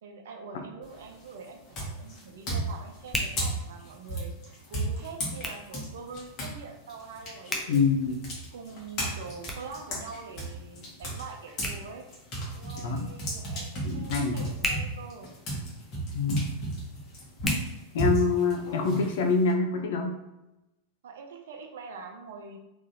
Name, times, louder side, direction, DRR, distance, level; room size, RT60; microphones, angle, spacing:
voice 1, 0.0-1.6 1.9-7.9 8.5-12.1 12.5-15.3 21.0-22.6, right 5 dB, 60° right, 3 dB, 0.5 m, -44 dB
sound 1, 0.8-1.2 1.7-6.6 6.9-11.8 12.1-19.5, right 1 dB, 35° left, 1.4 m, -33 dB
Hands, 0.9-18.5, left 1 dB, 10° left, 0.7 m, -41 dB
voice 2, 7.7-8.2 12.8-13.0 13.8-14.4 16.1-16.5 17.9-20.2, left 4 dB, 55° left, 3 dB, 0.7 m, -25 dB
3.7 x 3.0 x 2.8 m, 0.95 s
figure-of-eight pair, 90°, 0 cm